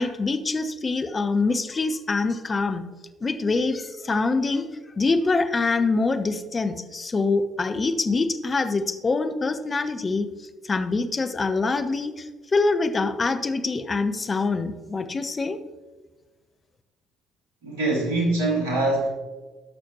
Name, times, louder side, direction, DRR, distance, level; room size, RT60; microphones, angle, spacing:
voice 1, 0.0-2.8 3.2-4.6 5.0-10.3 10.6-15.6, left 3 dB, 30° left, 8 dB, 0.9 m, -25 dB
voice 2, 17.6-19.1, right 2 dB, 75° right, -1 dB, 2.6 m, -23 dB
17.0 x 6.2 x 3.1 m, 1.3 s
figure-of-eight pair, 50°, 0 cm